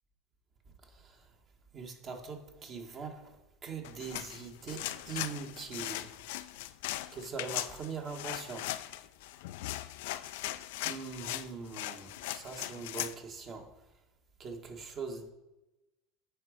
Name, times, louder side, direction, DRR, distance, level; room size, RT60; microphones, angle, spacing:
voice 1, 0.9-1.2 1.7-3.4 3.6-6.1 7.1-8.7 10.8-13.6 14.4-15.3, right 5 dB, 40° right, 3 dB, 1.7 m, -42 dB
sound 1, 3.8-13.2, left 15 dB, 65° left, 0.4 m, -39 dB
9.8 x 4.0 x 5.1 m, 0.99 s
hypercardioid pair, 80°, 0 cm